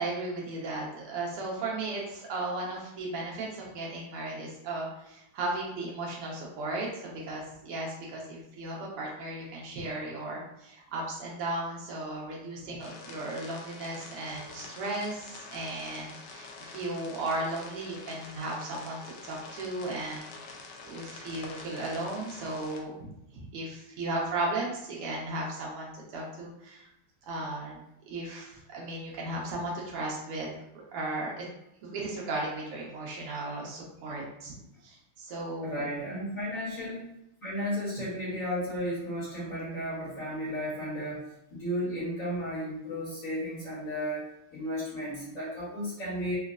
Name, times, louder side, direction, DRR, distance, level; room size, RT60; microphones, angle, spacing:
voice 1, 0.0-23.0 23.3-26.9 27.2-27.8 28.1-30.6 30.9-31.5 31.8-34.5 34.8-35.9, right 2 dB, 85° right, -3 dB, 1.8 m, -35 dB
sound 1, 12.8-22.8, left 3 dB, 75° left, 1.0 m, -47 dB
voice 2, 35.6-37.1 37.4-41.2 41.5-44.2 44.5-46.4, equal, 45° left, -8 dB, 1.2 m, -34 dB
4.3 x 2.3 x 2.4 m, 0.81 s
omnidirectional pair, 2.4 m